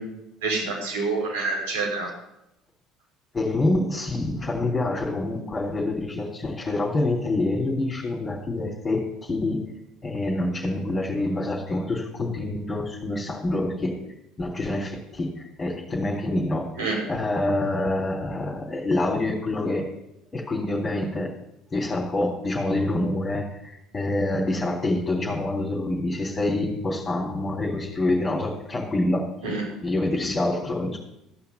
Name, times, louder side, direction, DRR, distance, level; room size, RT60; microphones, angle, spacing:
voice 1, 0.4-2.1 16.8-17.0 29.4-29.6, right 3 dB, 80° right, -3 dB, 5.9 m, -27 dB
voice 2, 3.3-9.7 10.0-14.1 14.4-16.7 17.1-19.9 20.3-21.3 21.7-29.6 29.8-31.0, left 2 dB, 25° left, -3 dB, 3.4 m, -26 dB
14.5 x 5.8 x 9.7 m, 0.86 s
hypercardioid pair, 70°, 0 cm